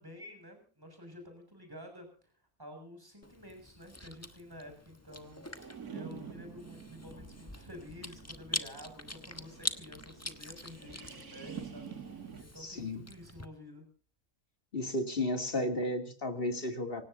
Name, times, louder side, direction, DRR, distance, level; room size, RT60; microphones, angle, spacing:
voice 1, 0.0-2.3 2.6-13.9, left 1 dB, 15° right, 4 dB, 6.8 m, -50 dB
Chewing mastication, 3.2-13.5, left 2 dB, 10° left, 1.1 m, -44 dB
sound 1, 5.6-12.4, right 7 dB, 80° right, 2.4 m, -48 dB
voice 2, 12.6-13.0 14.7-17.0, left 1 dB, 40° left, 5 dB, 3.0 m, -33 dB
26.0 x 17.5 x 2.7 m, 0.41 s
omnidirectional pair, 1.6 m